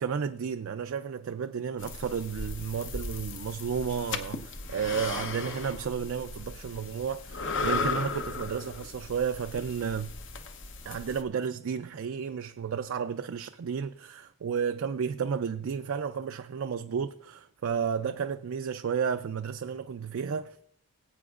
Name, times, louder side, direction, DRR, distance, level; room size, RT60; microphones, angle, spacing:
voice 1, 0.0-10.1 10.9-20.6, right 7 dB, 60° right, 0.4 m, -32 dB
sound 1, 1.8-11.2, left 4 dB, 55° left, 0.8 m, -36 dB
20.0 x 8.6 x 2.4 m
head